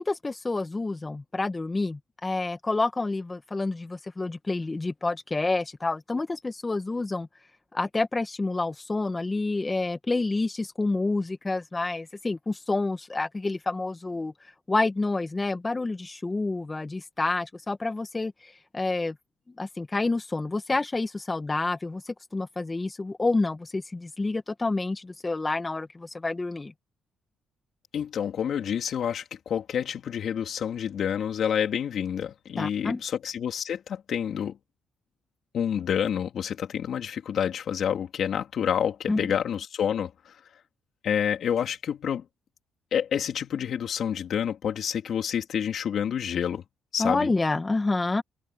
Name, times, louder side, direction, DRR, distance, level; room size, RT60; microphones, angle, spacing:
voice 1, 0.0-7.3 7.7-14.3 14.7-19.2 19.6-26.7 32.6-33.0 39.1-39.3 47.0-48.2, left 3 dB, 20° left, 1.9 m, -28 dB
voice 2, 27.9-34.6 35.5-40.4 41.0-42.2 42.9-46.6 46.9-47.3, left 8 dB, 65° left, 3.4 m, -28 dB
cardioid pair, 90°, 0 cm